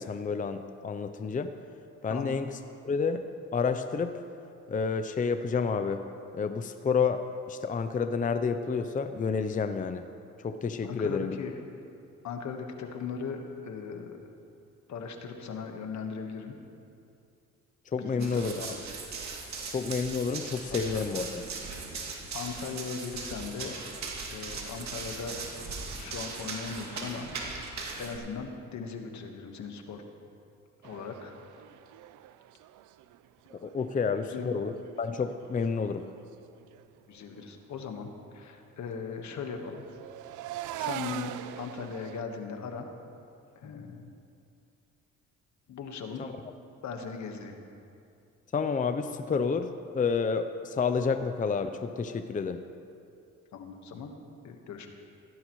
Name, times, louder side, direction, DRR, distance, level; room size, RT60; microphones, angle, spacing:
voice 1, 0.0-1.5 2.0-2.6 2.8-3.2 3.5-4.2 4.7-6.0 6.3-10.1 10.4-11.4 17.9-18.8 19.7-21.4 33.5-34.7 35.0-36.1 43.6-43.8 46.2-46.3 48.5-49.7 49.9-52.6, left 5 dB, 25° left, 8 dB, 0.6 m, -30 dB
voice 2, 10.8-11.5 12.2-14.2 14.9-16.5 18.0-18.8 20.7-21.0 22.3-23.8 24.3-25.4 25.9-30.0 30.8-31.3 34.3-34.5 37.1-39.8 40.8-42.9 43.5-44.1 45.7-46.3 46.8-47.6 53.5-54.1 54.4-54.9, left 5 dB, 70° left, 4 dB, 1.4 m, -38 dB
Run, 18.2-28.2, right 4 dB, 65° right, 2.4 m, -39 dB
sound 1, 30.8-34.0 34.3-36.3 36.6-36.8 37.2-37.5 39.0-42.2, right 13 dB, 85° right, 0.5 m, -42 dB
17.0 x 14.0 x 3.1 m, 2.5 s
cardioid pair, 90°, 30 cm